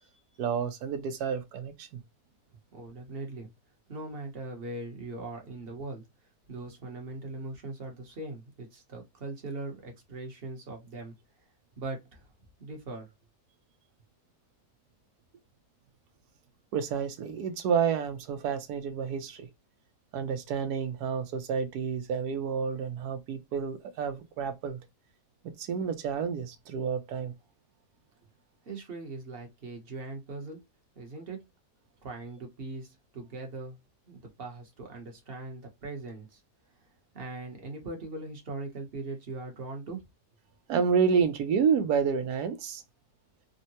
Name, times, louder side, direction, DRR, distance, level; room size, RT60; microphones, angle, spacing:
voice 1, 0.4-2.0 16.7-19.5 20.1-24.8 25.4-27.3 40.7-42.8, right 6 dB, 85° right, 1.2 m, -29 dB
voice 2, 2.7-3.5 3.9-6.1 6.5-11.1 11.8-12.3 12.6-13.1 28.6-30.6 30.9-31.5 32.0-33.8 34.0-36.4 37.1-40.0, right 3 dB, 45° right, 1.0 m, -40 dB
3.6 x 2.1 x 2.7 m
omnidirectional pair, 1.6 m